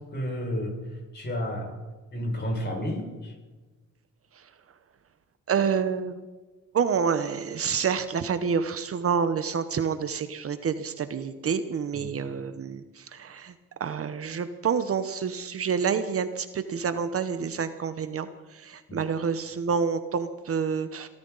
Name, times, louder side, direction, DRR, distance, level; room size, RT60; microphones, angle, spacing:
voice 1, 0.1-0.7 1.1-1.7 2.1-3.3 11.9-12.1 18.9-19.0, equal, 35° left, 1 dB, 6.3 m, -31 dB
voice 2, 5.5-6.2 6.7-13.5 13.8-21.1, right 6 dB, 50° right, 11 dB, 1.0 m, -28 dB
24.0 x 13.5 x 4.1 m, 1.2 s
cardioid pair, 90°, 30 cm